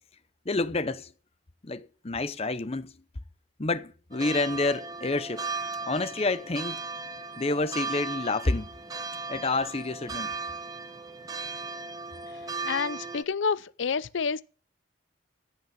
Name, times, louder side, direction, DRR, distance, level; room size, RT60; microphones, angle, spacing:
voice 1, 0.5-1.1 1.6-2.9 3.6-5.5 5.8-6.8 7.4-8.7 9.3-10.3, left 3 dB, 35° left, 0.8 m, -28 dB
sound 1, 4.1-13.2, right 4 dB, 20° right, 0.8 m, -37 dB
voice 2, 12.6-14.4, left 5 dB, 90° left, 0.6 m, -28 dB
16.5 x 6.3 x 7.3 m
head